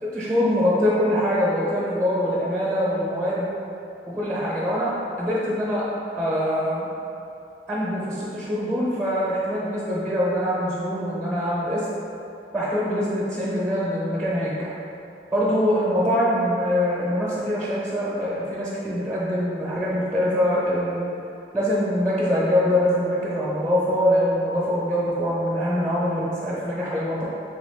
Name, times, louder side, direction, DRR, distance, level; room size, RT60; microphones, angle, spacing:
voice 1, 0.0-3.5 4.1-5.9 6.2-6.9 7.7-11.9 12.5-14.7 15.3-21.1 21.5-27.2, equal, 10° right, -7 dB, 0.6 m, -24 dB
3.5 x 3.5 x 3.4 m, 2.7 s
head